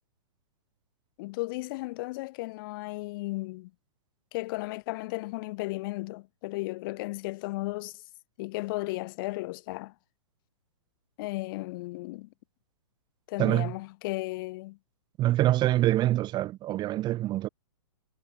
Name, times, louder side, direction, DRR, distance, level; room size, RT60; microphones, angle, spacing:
voice 1, 1.2-3.7 4.3-8.0 8.4-9.9 11.2-12.3 13.3-14.8, left 22 dB, 45° left, 4.8 m, -35 dB
voice 2, 13.4-13.7 15.2-17.5, right 14 dB, 25° right, 5.1 m, -25 dB
hypercardioid pair, 120°, 16 cm